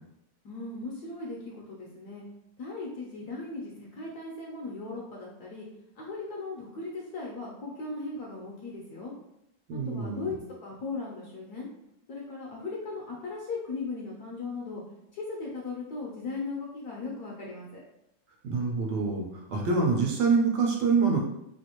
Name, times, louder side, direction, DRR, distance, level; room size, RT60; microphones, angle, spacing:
voice 1, 0.4-2.2 2.6-5.7 6.0-9.1 9.7-10.3 10.6-11.7 12.1-14.8 15.1-17.8, left 3 dB, 70° left, -3 dB, 1.0 m, -37 dB
voice 2, 9.7-10.3 18.4-21.2, right 4 dB, 75° right, -1 dB, 1.2 m, -26 dB
3.2 x 2.5 x 2.8 m, 0.81 s
omnidirectional pair, 2.1 m